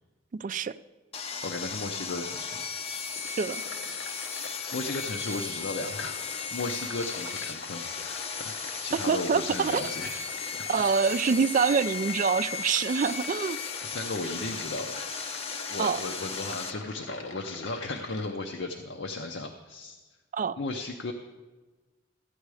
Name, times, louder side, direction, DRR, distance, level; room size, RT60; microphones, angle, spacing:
voice 1, 0.3-0.8 3.3-3.6 8.9-9.9 10.7-13.6 15.8-16.0 20.3-20.6, right 5 dB, 45° right, 15 dB, 0.3 m, -26 dB
Sawing, 1.1-16.7, left 5 dB, 30° left, 0.6 m, -36 dB
voice 2, 1.4-2.7 4.7-6.2 6.5-10.2 10.5-10.9 13.8-15.0 15.7-20.0 20.6-21.1, left 2 dB, 65° left, 3 dB, 0.8 m, -35 dB
sound 1, 2.7-18.3, left 4 dB, 85° left, 1.1 m, -45 dB
14.5 x 9.3 x 4.8 m, 1.2 s
head